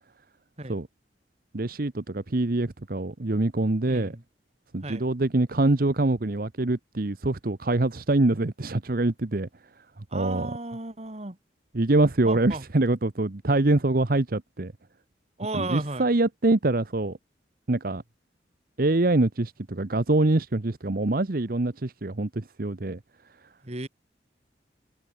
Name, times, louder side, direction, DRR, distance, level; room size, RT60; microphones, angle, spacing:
voice 1, 1.5-4.1 4.7-9.5 10.1-10.5 11.7-14.7 15.5-17.2 17.7-18.0 18.8-23.0, right 2 dB, 55° right, 1.0 m, -24 dB
voice 2, 3.9-4.2 4.8-5.0 10.1-11.4 12.3-12.6 15.4-16.1 23.6-23.9, right 2 dB, 40° right, 2.2 m, -34 dB
head